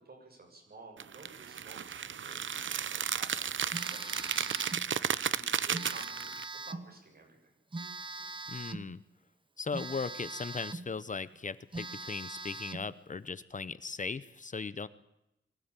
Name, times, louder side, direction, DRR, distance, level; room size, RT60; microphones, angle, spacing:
voice 1, 0.0-2.5 2.9-3.6 3.8-6.3 6.7-7.5, right 2 dB, 55° right, 1 dB, 7.7 m, -53 dB
sound 1, 1.0-6.4, right 8 dB, 85° right, 0.8 m, -34 dB
Telephone, 3.7-4.9 5.7-6.9 7.7-8.9 9.7-10.9 11.3-11.4 11.7-12.9, right 3 dB, 25° right, 1.0 m, -41 dB
voice 2, 8.5-9.0 9.6-14.9, left 4 dB, 40° left, 16 dB, 0.8 m, -38 dB
23.5 x 16.0 x 9.0 m, 0.86 s
wide cardioid pair, 130°, 19 cm